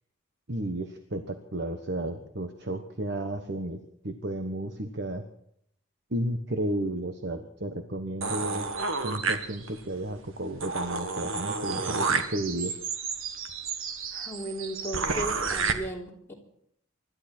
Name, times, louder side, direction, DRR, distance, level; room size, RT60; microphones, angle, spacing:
voice 1, 0.5-5.2 6.1-8.7 9.0-12.8, right 1 dB, 55° right, 7 dB, 1.3 m, -33 dB
sound 1, 8.2-9.9 10.3-10.4 10.6-15.7, right 4 dB, 75° right, 1.5 m, -31 dB
voice 2, 14.1-16.3, right 1 dB, 10° left, -3 dB, 3.4 m, -36 dB
25.5 x 12.5 x 4.5 m, 0.70 s
head